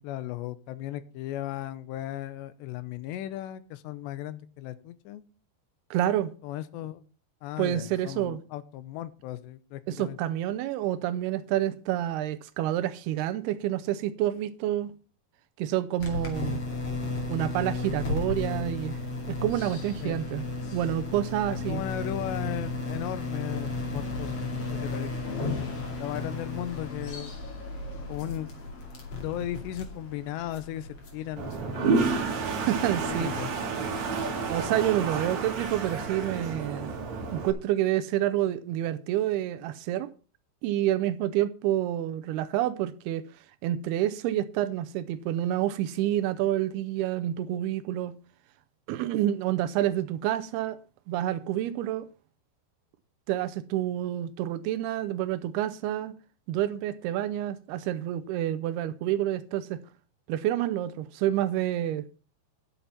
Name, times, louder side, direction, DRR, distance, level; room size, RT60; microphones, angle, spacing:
voice 1, 0.0-5.2 6.4-7.0 7.4-10.2 20.0-20.2 21.7-27.3 28.1-28.5 29.2-32.1 33.2-33.5, left 13 dB, 85° left, 3.0 m, -36 dB
voice 2, 5.9-6.3 7.6-8.4 9.9-14.9 15.6-16.6 17.3-19.0 19.3-20.4 20.7-21.8 32.7-33.4 34.5-37.0 37.3-40.1 40.6-43.2 43.6-48.1 48.9-50.8 51.1-52.1 53.3-56.1 56.5-59.8 60.3-62.1, right 12 dB, 80° right, 2.4 m, -28 dB
sound 1, 16.0-33.2, left 3 dB, 40° left, 3.0 m, -34 dB
Toilet flush, 31.4-37.5, right 4 dB, 50° right, 2.6 m, -30 dB
11.0 x 7.0 x 5.8 m
omnidirectional pair, 4.9 m